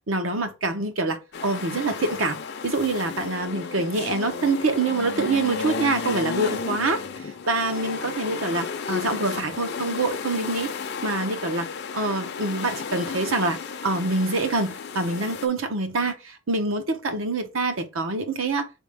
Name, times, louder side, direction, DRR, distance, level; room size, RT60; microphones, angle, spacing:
voice 1, 0.1-7.0 7.5-10.7 11.0-11.7 11.9-18.7, right 3 dB, 70° right, 0.9 m, -26 dB
sound 1, 1.3-15.5, left 5 dB, 50° left, 0.5 m, -33 dB
4.2 x 3.5 x 3.4 m
head